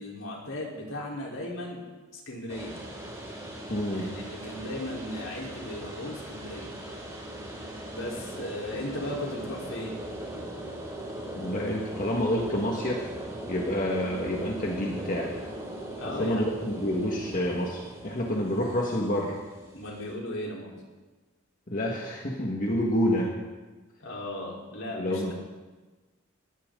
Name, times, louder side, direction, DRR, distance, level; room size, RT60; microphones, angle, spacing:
voice 1, 0.0-1.8 2.3-2.8 3.9-6.7 7.9-9.9 16.0-16.5 19.7-20.7 24.0-25.3, left 1 dB, 75° left, -2 dB, 4.3 m, -36 dB
sound 1, 2.5-20.1, right 1 dB, 15° right, 3.5 m, -39 dB
voice 2, 3.7-4.1 11.4-13.0 13.5-15.3 16.0-19.4 21.7-23.3 24.9-25.3, left 1 dB, 40° left, -2 dB, 1.9 m, -28 dB
19.5 x 16.0 x 4.0 m, 1.3 s
head